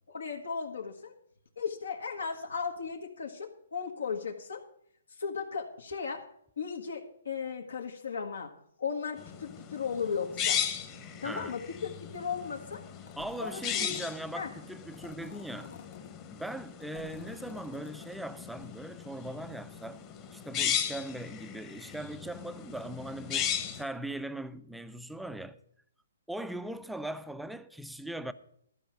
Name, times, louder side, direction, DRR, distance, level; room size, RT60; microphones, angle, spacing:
voice 1, 0.1-1.1 1.6-4.6 5.2-6.2 6.6-8.5 8.8-10.6 11.2-12.8 13.4-13.9 14.3-14.5, left 6 dB, 85° left, 1.4 m, -36 dB
sound 1, 9.2-23.8, left 8 dB, 20° left, 1.0 m, -37 dB
voice 2, 11.2-11.6 13.2-15.7 16.3-20.0 20.3-25.6 26.3-28.3, right 1 dB, ahead, 0.4 m, -40 dB
sound 2, 13.1-14.2 14.9-16.1 16.7-18.2, left 6 dB, 55° left, 1.2 m, -49 dB
13.0 x 4.8 x 8.9 m
hypercardioid pair, 155°, 0 cm